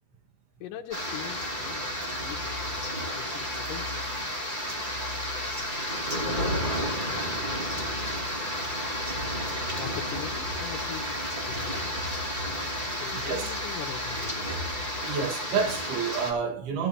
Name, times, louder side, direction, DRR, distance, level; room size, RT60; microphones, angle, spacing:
voice 1, 0.6-1.9 2.2-2.6 3.1-4.3 9.8-11.2 11.5-12.1 13.0-14.5, left 10 dB, 70° left, 2.7 m, -41 dB
sound 1, 0.9-16.3, equal, 15° right, 2.7 m, -32 dB
sound 2, 1.2-15.1, left 3 dB, 75° right, 3.6 m, -44 dB
voice 2, 13.1-13.5 15.0-16.9, right 5 dB, 90° right, 4.0 m, -29 dB
16.0 x 11.5 x 3.0 m
omnidirectional pair, 4.3 m